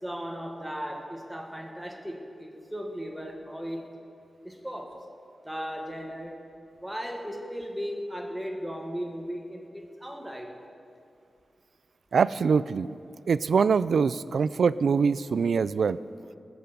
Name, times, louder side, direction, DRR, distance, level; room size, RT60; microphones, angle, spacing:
voice 1, 0.0-3.9 4.4-5.0 5.4-6.4 6.8-10.5, equal, 5° right, 1 dB, 1.5 m, -36 dB
voice 2, 12.1-13.0 13.3-16.0, right 5 dB, 75° right, 16 dB, 0.3 m, -24 dB
18.5 x 7.9 x 7.0 m, 2.5 s
wide cardioid pair, 135°, 0 cm